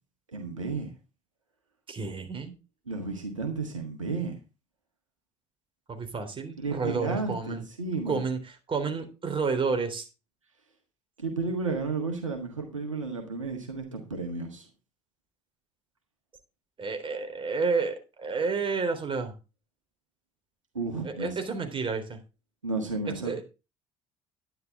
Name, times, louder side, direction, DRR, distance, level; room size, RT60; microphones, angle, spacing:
voice 1, 0.3-0.9 2.9-4.4 6.6-8.2 11.2-14.7 20.7-21.4 22.6-23.4, right 3 dB, 90° right, 3 dB, 1.6 m, -32 dB
voice 2, 1.9-2.5 5.9-7.6 8.1-8.4 8.7-10.1 16.8-19.3 21.0-22.2 23.2-23.4, right 4 dB, 35° right, 7 dB, 3.5 m, -30 dB
10.5 x 10.5 x 3.6 m, 0.28 s
figure-of-eight pair, 55°, 16 cm